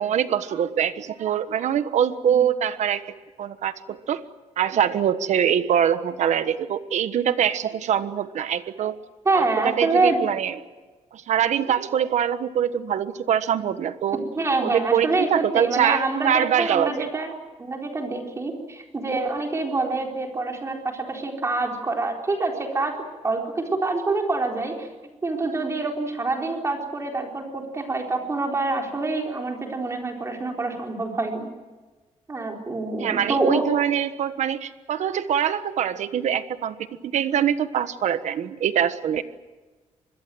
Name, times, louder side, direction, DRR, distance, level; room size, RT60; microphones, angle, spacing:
voice 1, 0.0-3.0 3.4-4.2 4.6-9.0 9.3-10.6 11.1-14.2 14.6-17.1 33.0-36.8 37.0-39.2, right 9 dB, 75° right, 11 dB, 1.4 m, -23 dB
voice 2, 9.2-10.2 14.4-17.3 17.6-23.0 23.2-24.9 25.2-31.5 32.3-33.6, right 3 dB, 25° right, 1 dB, 4.2 m, -26 dB
25.5 x 21.5 x 7.8 m, 1.3 s
wide cardioid pair, 170°, 12 cm